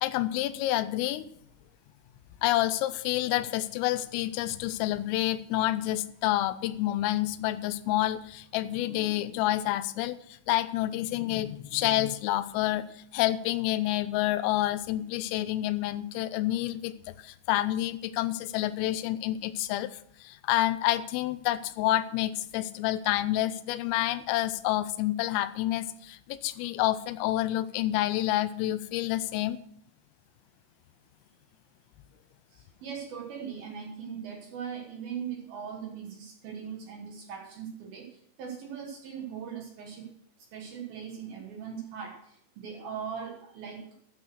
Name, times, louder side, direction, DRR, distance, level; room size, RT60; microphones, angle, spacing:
voice 1, 0.0-1.2 2.4-10.2 10.5-12.8 13.1-29.6, left 15 dB, 85° left, 14 dB, 3.3 m, -28 dB
voice 2, 32.5-40.1 40.5-43.9, right 7 dB, 65° right, 2 dB, 2.6 m, -40 dB
13.5 x 8.3 x 6.2 m, 0.67 s
omnidirectional pair, 5.8 m